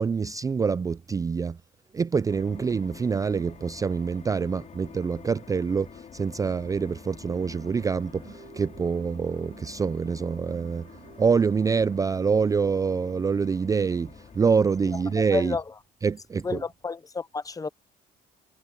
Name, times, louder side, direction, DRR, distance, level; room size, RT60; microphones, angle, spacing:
voice 1, 0.0-1.6 1.9-10.9 11.2-15.6 16.0-16.6, right 5 dB, 20° right, 0.3 m, -26 dB
sound 1, 2.3-15.3, left 7 dB, 45° left, 5.5 m, -48 dB
sound 2, 6.1-6.2 6.4-11.4, right 10 dB, 55° right, 7.2 m, -51 dB
voice 2, 15.3-15.6 16.4-17.7, left 4 dB, 20° left, 0.7 m, -30 dB
cardioid pair, 110°, 17 cm